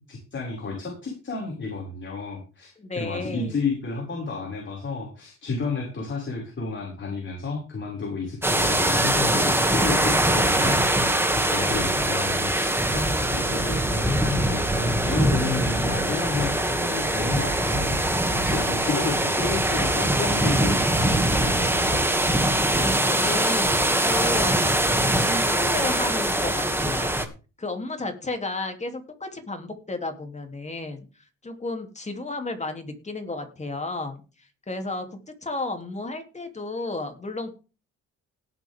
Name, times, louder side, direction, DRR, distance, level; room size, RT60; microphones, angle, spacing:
voice 1, 0.1-18.0 18.4-22.0, left 3 dB, 40° left, -1 dB, 6.2 m, -31 dB
voice 2, 2.8-3.5 11.5-12.0 22.8-24.9 25.2-27.2 27.6-31.1 31.4-34.2 34.7-37.5, left 2 dB, 25° left, 5 dB, 3.2 m, -33 dB
sound 1, 8.4-27.2, right 1 dB, 10° right, 2.4 m, -23 dB
18.0 x 8.1 x 3.7 m, 0.32 s
cardioid pair, 90°, 30 cm